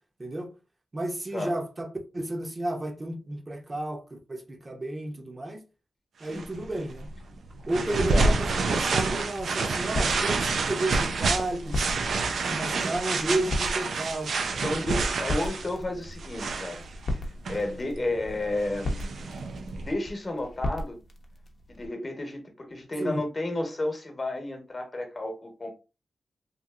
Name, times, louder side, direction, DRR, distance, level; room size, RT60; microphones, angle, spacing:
voice 1, 0.9-1.9 2.1-5.6 6.2-7.1 7.7-11.8 12.5-14.5 23.0-23.2, right 1 dB, 35° right, 0.7 m, -32 dB
sound 1, 6.3-19.9, right 3 dB, 80° right, 0.4 m, -29 dB
voice 2, 7.9-8.3 14.6-16.8 17.5-19.0 19.9-21.0 21.7-25.7, left 2 dB, 40° left, 1.0 m, -32 dB
sound 2, 8.4-21.9, left 1 dB, 65° left, 0.7 m, -37 dB
2.9 x 2.6 x 2.4 m
cardioid pair, 60°, 0 cm